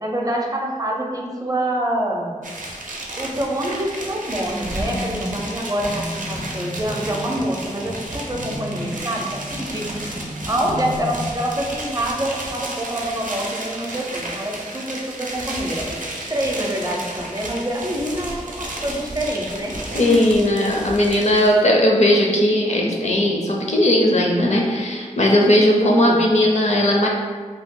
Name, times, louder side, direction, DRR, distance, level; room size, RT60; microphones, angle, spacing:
voice 1, 0.0-2.3 3.2-9.9 10.5-19.8 25.8-26.2, right 1 dB, 25° right, -1 dB, 0.5 m, -26 dB
sound 1, 2.4-21.6, right 1 dB, 80° right, 0.5 m, -33 dB
sound 2, 4.4-11.3, left 1 dB, 85° left, 1.1 m, -33 dB
voice 2, 19.9-27.1, left 1 dB, 55° left, -1 dB, 0.5 m, -17 dB
2.8 x 2.2 x 3.6 m, 1.5 s
wide cardioid pair, 65°, 13 cm